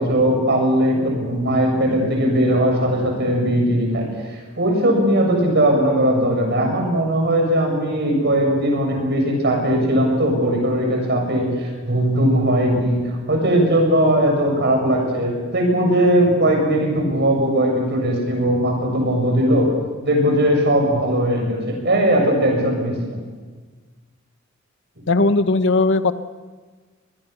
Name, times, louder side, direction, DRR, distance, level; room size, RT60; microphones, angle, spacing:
voice 1, 0.0-4.1 4.6-19.7 20.0-23.2, right 1 dB, 55° right, 1 dB, 7.4 m, -19 dB
voice 2, 25.1-26.1, left 3 dB, 65° left, 12 dB, 1.0 m, -17 dB
24.0 x 20.0 x 6.9 m, 1.4 s
head